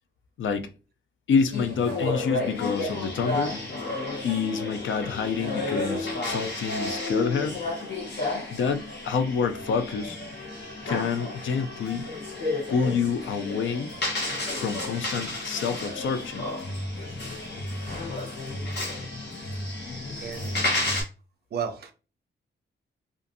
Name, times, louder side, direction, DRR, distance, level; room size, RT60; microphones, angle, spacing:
voice 1, 0.4-0.7 1.3-3.6 4.2-7.6 8.5-10.2 10.9-12.1 12.7-14.0 14.6-16.4 18.5-18.6, left 6 dB, 80° left, 0.4 m, -28 dB
sound 1, 1.5-21.0, left 2 dB, 60° left, 1.1 m, -32 dB
voice 2, 20.2-20.7 21.5-21.9, right 7 dB, 55° right, 0.5 m, -34 dB
2.5 x 2.5 x 2.6 m
wide cardioid pair, 150°, 20 cm